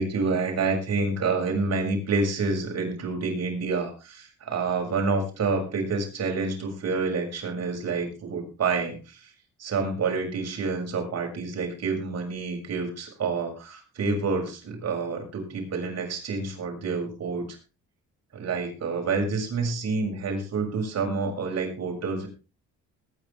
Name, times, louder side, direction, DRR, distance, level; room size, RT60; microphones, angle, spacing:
voice 1, 0.0-9.3 9.6-17.4 18.3-22.3, right 4 dB, 55° right, 3 dB, 6.6 m, -28 dB
21.5 x 10.0 x 3.5 m, 0.32 s
cardioid pair, 90°, 30 cm